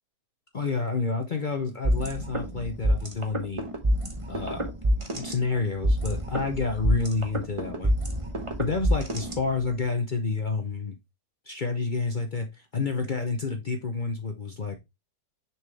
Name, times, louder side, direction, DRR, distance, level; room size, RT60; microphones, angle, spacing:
voice 1, 0.5-3.7 4.3-7.9 8.6-11.0 11.5-12.5 12.7-14.8, left 4 dB, 50° left, 0.6 m, -29 dB
sound 1, 1.8-9.8, equal, 25° right, 0.9 m, -27 dB
6.4 x 4.5 x 3.4 m
omnidirectional pair, 1.8 m